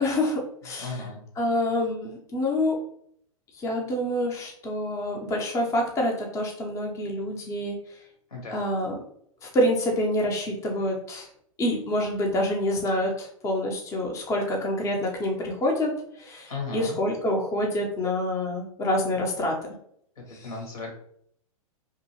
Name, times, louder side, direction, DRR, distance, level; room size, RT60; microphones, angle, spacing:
voice 1, 0.0-1.0 1.4-2.8 3.6-7.8 8.5-8.9 9.4-11.3 11.6-19.6 20.3-20.5, left 1 dB, 15° left, 0 dB, 0.5 m, -27 dB
voice 2, 0.8-1.2 8.3-8.6 16.5-17.0 20.2-20.9, left 3 dB, 85° left, -1 dB, 1.3 m, -35 dB
2.7 x 2.4 x 2.7 m, 0.67 s
hypercardioid pair, 115°, 19 cm